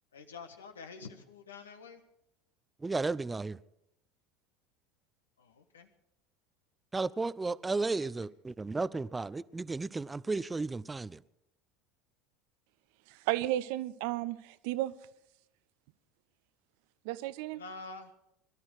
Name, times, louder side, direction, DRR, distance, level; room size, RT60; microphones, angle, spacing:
voice 1, 0.1-2.0 5.4-5.9 8.0-8.1 17.5-18.1, left 4 dB, 75° left, 1.4 m, -47 dB
voice 2, 2.8-3.6 6.9-11.2, right 3 dB, 15° right, 0.5 m, -33 dB
voice 3, 13.1-14.9 17.0-17.6, right 15 dB, 60° right, 0.6 m, -33 dB
22.0 x 12.5 x 4.8 m
figure-of-eight pair, 70°, 0 cm